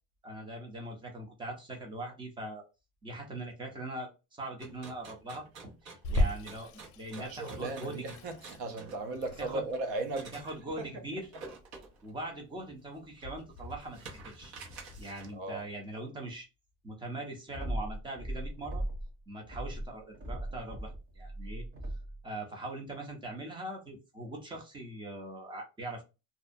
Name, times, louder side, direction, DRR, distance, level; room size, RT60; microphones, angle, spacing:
voice 1, 0.2-2.6 3.0-8.1 9.4-9.6 10.3-11.3 12.0-14.0 14.2-14.5 15.0-16.5 16.8-18.8 19.3-21.6 22.2-26.0, right 2 dB, 10° right, 0.3 m, -41 dB
sound 1, 4.6-10.5 11.2-12.1 12.6-12.7 13.2-15.4, right 4 dB, 90° right, 1.1 m, -50 dB
Water tap faucet / Sink (filling or washing), 6.0-15.0, left 1 dB, 60° left, 0.5 m, -38 dB
voice 2, 7.1-10.9 15.3-15.7, right 2 dB, 70° right, 0.7 m, -37 dB
sound 2, 17.5-19.1 19.4-22.2, right 1 dB, 30° right, 0.8 m, -38 dB
2.5 x 2.1 x 2.5 m
cardioid pair, 165°, 44 cm